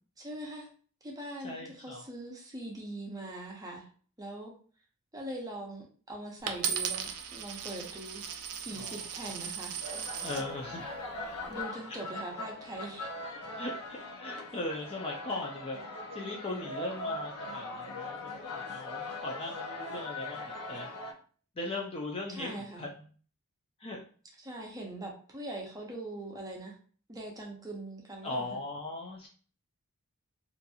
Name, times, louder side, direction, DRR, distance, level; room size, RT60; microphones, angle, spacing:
voice 1, 0.2-0.7 1.0-3.9 4.2-4.5 5.1-8.2 8.6-9.8 11.4-13.1 22.3-22.9 24.4-26.8 27.1-28.6, right 1 dB, 15° right, -1 dB, 0.6 m, -42 dB
voice 2, 1.4-2.1 8.7-9.1 10.2-10.8 13.6-20.9 21.6-23.1 23.8-24.0 28.2-29.3, left 2 dB, 25° left, 0 dB, 0.4 m, -39 dB
Coin (dropping), 6.5-10.5 11.2-11.6, right 7 dB, 85° right, 0.4 m, -37 dB
sound 1, 9.8-21.1, left 2 dB, 80° left, 0.6 m, -40 dB
2.8 x 2.6 x 2.3 m, 0.42 s
head